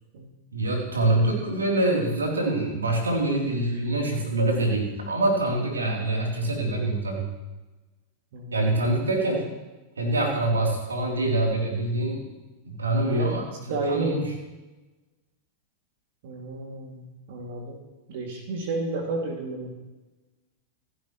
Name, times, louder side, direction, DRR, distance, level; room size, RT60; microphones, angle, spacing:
voice 1, 0.5-7.3 8.5-9.5 10.0-12.3 12.6-13.4 13.9-14.3, right 2 dB, 75° right, 0 dB, 3.5 m, -25 dB
voice 2, 8.3-9.4 13.0-14.2 16.2-17.8 18.1-19.7, right 3 dB, 55° right, 2 dB, 2.6 m, -32 dB
27.5 x 11.5 x 3.2 m, 1.1 s
figure-of-eight pair, 90°, 0 cm